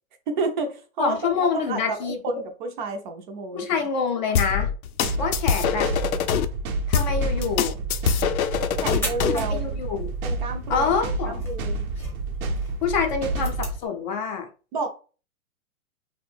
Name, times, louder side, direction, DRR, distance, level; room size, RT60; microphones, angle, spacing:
voice 1, 0.3-3.7 8.8-9.7 10.2-10.9 11.3-11.8 14.7-14.9, right 3 dB, 35° right, 0.4 m, -30 dB
voice 2, 1.0-2.2 3.5-4.7 5.2-5.9 6.9-7.8 9.3-10.1 10.7-11.4 12.8-14.5, left 5 dB, 35° left, 0.5 m, -26 dB
sound 1, 4.3-6.4 6.9-9.4, left 8 dB, 90° left, 0.5 m, -24 dB
sound 2, 5.0-13.8, right 2 dB, 85° right, 0.7 m, -29 dB
sound 3, 8.3-13.9, left 1 dB, 5° left, 0.7 m, -40 dB
2.5 x 2.1 x 3.2 m
hypercardioid pair, 135°, 41 cm